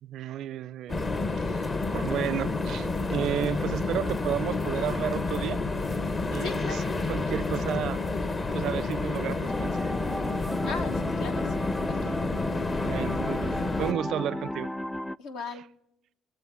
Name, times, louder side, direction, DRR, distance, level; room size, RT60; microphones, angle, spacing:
voice 1, 0.0-1.0 1.3-1.7 1.9-5.6 6.3-6.8 7.1-8.0 8.5-9.9 12.8-14.7, right 11 dB, 60° right, 0.4 m, -32 dB
sound 1, 0.9-13.9, left 3 dB, 35° left, 1.0 m, -29 dB
voice 2, 6.4-6.9 10.6-12.1 15.2-15.6, left 5 dB, 70° left, 1.1 m, -38 dB
sound 2, 9.5-15.2, left 1 dB, 5° left, 0.3 m, -34 dB
21.5 x 7.7 x 3.6 m
hypercardioid pair, 55°, 0 cm